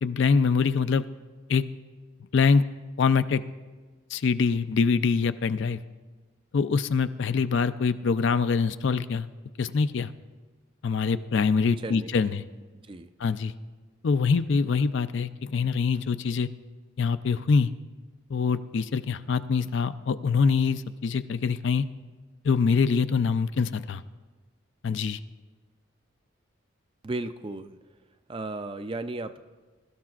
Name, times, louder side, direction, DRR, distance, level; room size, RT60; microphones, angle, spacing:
voice 1, 0.0-1.0 1.5-1.6 2.3-2.6 3.0-3.4 4.1-5.8 6.5-9.3 9.6-10.1 10.8-12.4 13.2-13.5 14.0-16.5 17.0-17.7 18.3-21.8 22.4-24.0 24.8-25.2, left 5 dB, 55° left, 12 dB, 0.4 m, -24 dB
voice 2, 11.8-12.3 12.7-13.1 27.0-27.8 28.3-29.4, right 2 dB, 25° right, 10 dB, 0.4 m, -35 dB
22.0 x 12.5 x 2.4 m, 1.4 s
head